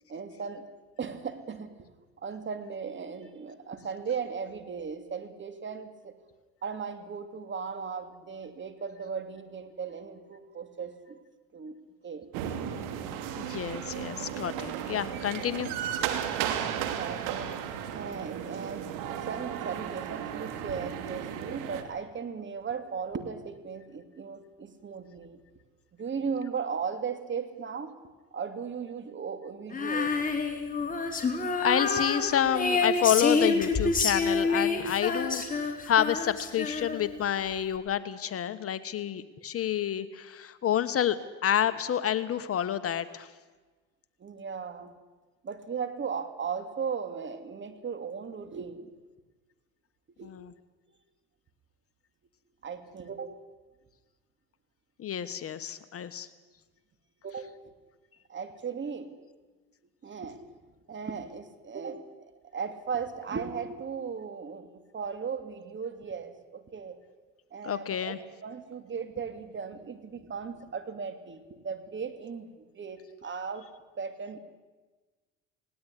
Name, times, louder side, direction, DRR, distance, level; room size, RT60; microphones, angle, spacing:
voice 1, 0.1-0.7 1.0-1.7 2.2-6.2 6.6-11.2 11.5-11.8 12.0-12.3 14.7-14.8 16.8-17.6 17.9-25.4 26.0-28.0 28.3-30.2 44.2-44.9 45.4-48.9 50.2-50.3 52.6-53.4 57.2-57.6 58.3-59.2 60.0-60.5 60.9-62.3 62.5-67.0 67.5-68.1 68.4-72.5 72.7-73.7 74.0-74.4, right 6 dB, 35° right, 9 dB, 2.8 m, -37 dB
sound 1, 12.3-21.8, right 9 dB, 80° right, 2.6 m, -34 dB
voice 2, 13.4-15.7 31.6-41.2 41.4-43.3 50.2-50.5 55.0-56.3 67.6-68.2, left 10 dB, 45° left, 13 dB, 1.3 m, -29 dB
Female singing, 29.7-37.2, left 4 dB, 25° left, 4.0 m, -28 dB
19.0 x 18.5 x 10.0 m, 1.3 s
supercardioid pair, 90°, 32 cm